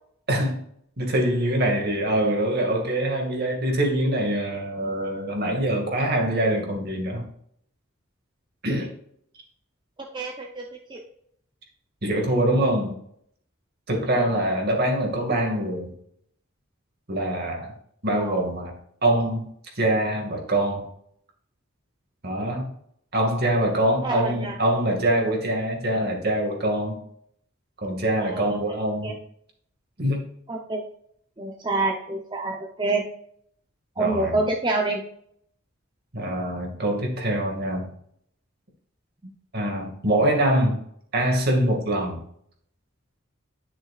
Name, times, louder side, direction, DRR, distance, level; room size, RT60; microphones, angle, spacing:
voice 1, 0.3-0.6 1.0-7.3 8.6-8.9 12.0-12.9 13.9-15.9 17.1-17.7 18.0-18.7 19.0-19.5 19.8-20.9 22.2-22.7 23.1-27.0 27.8-29.1 30.0-30.2 34.0-34.4 36.1-37.9 39.5-40.8 41.1-42.2, right 1 dB, 50° right, 1 dB, 2.2 m, -24 dB
voice 2, 10.1-10.6 10.9-11.0 18.2-18.4 24.0-24.6 28.2-28.8 29.0-29.1 30.5-30.8 31.4-33.1 34.0-35.0, right 2 dB, 25° right, 0 dB, 0.8 m, -27 dB
11.0 x 6.2 x 2.5 m, 0.68 s
head